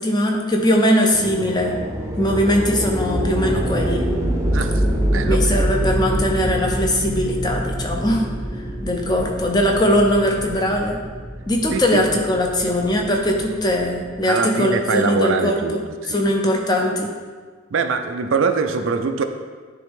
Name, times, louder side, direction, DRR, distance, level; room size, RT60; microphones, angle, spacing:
voice 1, 0.0-1.8 2.2-4.1 5.2-8.3 8.8-11.0 11.5-15.8 16.1-17.1, equal, 20° left, 1 dB, 0.7 m, -20 dB
sound 1, 1.1-14.2, equal, 15° right, 0.7 m, -25 dB
voice 2, 4.5-4.8 5.1-5.7 11.7-12.2 14.2-15.8 16.0-16.3 17.7-19.2, right 4 dB, 70° right, 7 dB, 0.5 m, -23 dB
10.0 x 3.5 x 3.6 m, 1.5 s
head